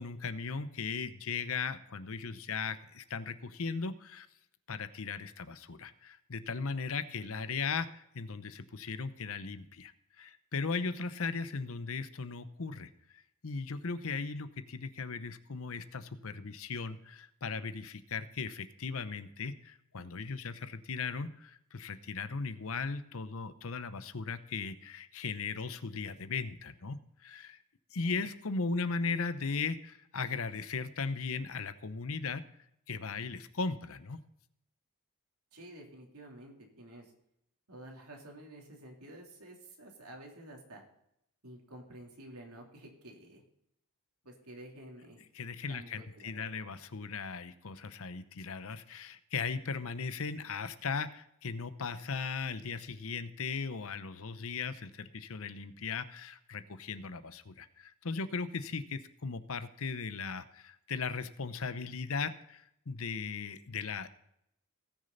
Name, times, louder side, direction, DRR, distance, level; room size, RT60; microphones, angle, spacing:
voice 1, 0.0-4.3 4.7-9.9 10.2-12.9 13.4-27.6 27.9-32.4 32.9-34.2 45.3-64.1, left 4 dB, 65° left, 12 dB, 0.8 m, -37 dB
voice 2, 35.5-37.1 37.7-40.8 41.4-43.4 44.2-45.2 45.7-45.9 46.1-46.7, right 1 dB, 85° right, 0 dB, 3.1 m, -51 dB
18.5 x 6.6 x 4.0 m, 0.76 s
head